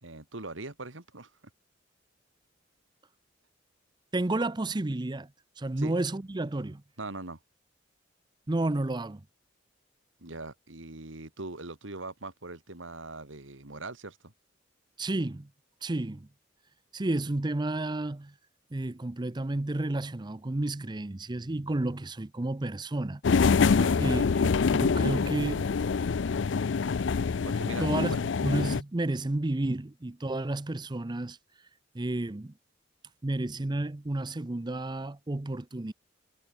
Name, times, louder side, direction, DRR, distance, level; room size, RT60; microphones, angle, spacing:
voice 1, 0.0-1.3 5.8-5.9 7.0-7.4 10.2-14.3 23.7-24.0 27.4-28.2, right 2 dB, 80° right, 2.7 m, -41 dB
voice 2, 4.1-5.3 5.6-6.8 8.5-9.2 15.0-15.5 15.8-16.3 16.9-18.3 18.7-23.2 24.0-25.7 27.8-28.1 28.4-31.4 31.9-32.5 33.2-35.9, right 2 dB, 20° right, 0.6 m, -31 dB
sound 1, 23.2-28.8, left 5 dB, 65° left, 0.5 m, -25 dB
head